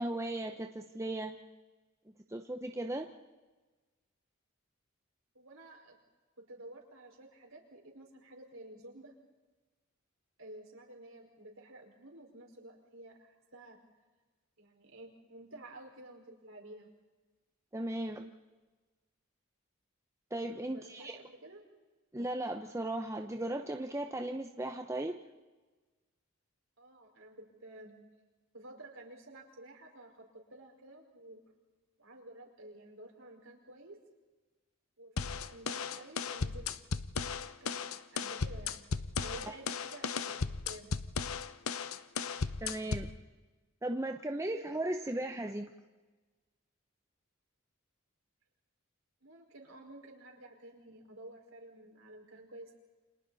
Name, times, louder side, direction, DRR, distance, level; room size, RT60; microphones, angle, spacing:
voice 1, 0.0-1.4 2.3-3.1 17.7-18.3 20.3-21.2 22.1-25.2 42.6-43.1 43.8-45.7, right 1 dB, 15° right, 4 dB, 0.9 m, -36 dB
voice 2, 5.3-6.0 6.4-9.1 10.4-13.8 14.6-16.9 20.6-21.6 26.8-27.9 28.5-31.4 32.0-34.0 35.0-36.7 37.6-38.9 39.2-40.4 40.6-40.9 49.2-52.8, right 1 dB, 65° right, 1 dB, 5.0 m, -52 dB
sound 1, 35.2-43.2, left 5 dB, 80° left, 0.8 m, -36 dB
29.5 x 26.0 x 4.2 m, 1.2 s
head